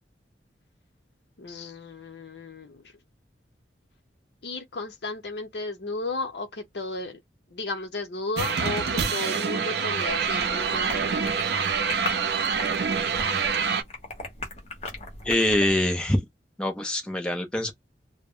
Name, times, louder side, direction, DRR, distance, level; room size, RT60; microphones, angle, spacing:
voice 1, 1.4-2.8 4.4-7.2 7.5-11.5, left 3 dB, 70° left, 0.7 m, -34 dB
sound 1, 8.4-13.8, right 6 dB, 65° right, 0.5 m, -26 dB
sound 2, 10.1-15.7, left 2 dB, 35° left, 0.8 m, -38 dB
voice 2, 15.2-16.2 16.6-17.7, left 1 dB, 5° left, 0.4 m, -24 dB
2.1 x 2.0 x 3.6 m
head